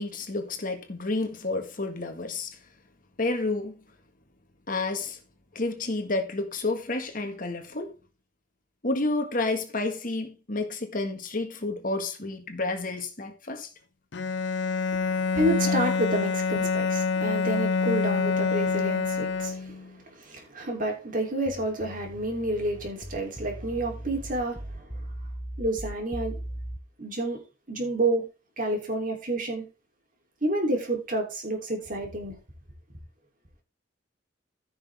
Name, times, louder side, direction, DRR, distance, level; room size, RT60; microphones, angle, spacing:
voice 1, 0.0-2.5 3.2-3.8 4.7-5.2 5.5-7.9 8.8-13.7 14.9-15.0, left 2 dB, 50° left, 1.7 m, -30 dB
Bowed string instrument, 14.1-19.9, left 4 dB, 80° left, 0.7 m, -26 dB
voice 2, 15.0-25.0 25.6-26.3 27.0-27.4 27.7-28.2 28.6-29.7 30.4-32.3, right 1 dB, 50° right, 3.3 m, -29 dB
sound 1, 21.5-26.8, right 1 dB, 5° left, 1.0 m, -38 dB
15.0 x 6.1 x 3.5 m
head